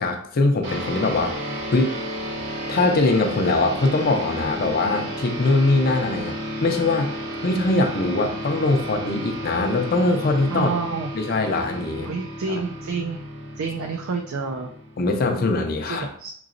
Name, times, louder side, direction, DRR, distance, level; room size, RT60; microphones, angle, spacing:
voice 1, 0.0-1.3 1.7-1.9 2.7-6.3 6.6-7.2 7.4-10.7 11.1-12.1 12.5-12.6 15.0-16.1, left 2 dB, 45° left, 4 dB, 0.5 m, -22 dB
sound 1, 0.6-15.4, equal, 55° right, 1.2 m, -32 dB
voice 2, 10.5-11.1 12.0-13.2 13.6-14.7 15.8-16.3, right 4 dB, 75° right, 3 dB, 0.4 m, -29 dB
4.7 x 3.0 x 2.5 m, 0.62 s
head